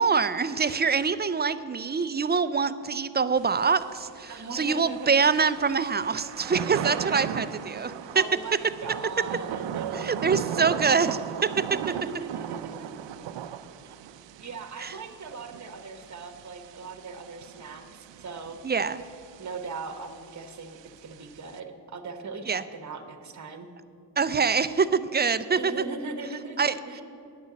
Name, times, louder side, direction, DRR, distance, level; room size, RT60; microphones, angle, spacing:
voice 1, 0.0-8.2 9.9-11.6 14.8-15.0 18.6-19.0 22.5-22.6 24.2-25.7 26.6-26.8, right 5 dB, 25° right, 14 dB, 0.4 m, -25 dB
Thunder / Rain, 3.4-21.6, right 9 dB, 90° right, 0.5 m, -38 dB
voice 2, 4.3-5.2 6.7-6.8 7.1-7.2 7.8-10.1 11.7-13.1 13.9-14.0 14.4-17.8 18.2-18.6 19.4-23.7 25.6-27.0, right 4 dB, 40° right, 8 dB, 1.0 m, -39 dB
9.9 x 6.4 x 8.2 m, 2.5 s
cardioid pair, 75°, 42 cm